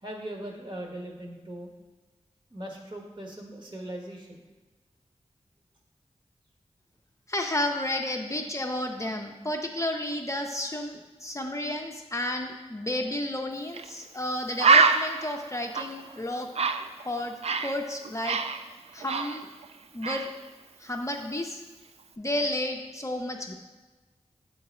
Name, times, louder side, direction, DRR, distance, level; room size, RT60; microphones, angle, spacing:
voice 1, 0.0-1.7 2.5-4.4, right 1 dB, 40° right, 0 dB, 1.4 m, -39 dB
voice 2, 7.3-16.5 17.0-17.3 17.6-18.4 18.9-19.5 19.9-20.3 20.8-21.6 22.2-23.5, left 1 dB, 25° left, 2 dB, 0.6 m, -32 dB
Bird, 13.7-13.9 14.2-14.3 14.6-17.8 18.0-19.7 20.0-20.3, right 4 dB, 60° right, 0.4 m, -25 dB
7.8 x 3.9 x 4.2 m, 1.3 s
wide cardioid pair, 60°, 12 cm